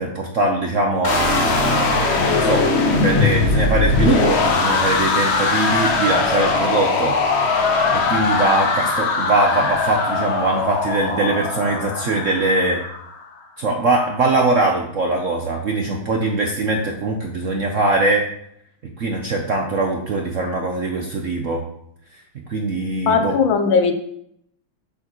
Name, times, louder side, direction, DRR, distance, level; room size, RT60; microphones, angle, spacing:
voice 1, 0.0-7.2 7.9-12.8 13.6-18.2 19.0-21.6 22.5-23.3, right 2 dB, 55° right, 1 dB, 0.8 m, -21 dB
sound 1, 1.0-13.1, left 4 dB, 55° left, 0.7 m, -20 dB
voice 2, 23.1-23.9, left 5 dB, 75° left, 7 dB, 1.5 m, -18 dB
7.6 x 6.6 x 3.1 m, 0.70 s
omnidirectional pair, 2.3 m